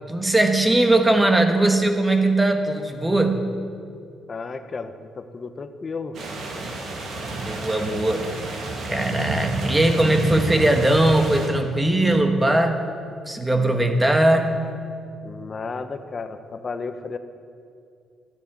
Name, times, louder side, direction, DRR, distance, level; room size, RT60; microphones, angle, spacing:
voice 1, 0.1-3.5 7.3-8.3 8.9-12.9 13.3-14.6, right 1 dB, 15° right, 5 dB, 1.4 m, -20 dB
voice 2, 4.3-6.2 15.2-17.2, left 4 dB, 40° left, 9 dB, 1.0 m, -33 dB
sound 1, 6.1-11.5, right 2 dB, 70° right, 2.2 m, -29 dB
13.5 x 6.7 x 9.6 m, 2.4 s
cardioid pair, 90°, 0 cm